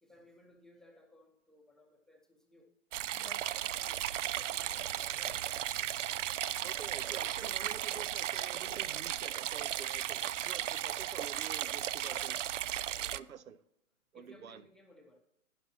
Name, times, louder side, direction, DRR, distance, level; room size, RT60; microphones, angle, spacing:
voice 1, 0.0-2.7 3.1-5.8 6.9-8.0 12.0-12.3 12.9-13.3 14.1-15.2, left 1 dB, ahead, 0.7 m, -60 dB
sound 1, 2.9-13.2, right 11 dB, 65° right, 0.5 m, -35 dB
voice 2, 6.6-12.3 13.1-13.6 14.1-14.6, right 8 dB, 85° right, 0.8 m, -48 dB
sound 2, 6.8-13.3, right 4 dB, 40° right, 2.6 m, -60 dB
12.0 x 10.0 x 2.8 m
hypercardioid pair, 140°, 41 cm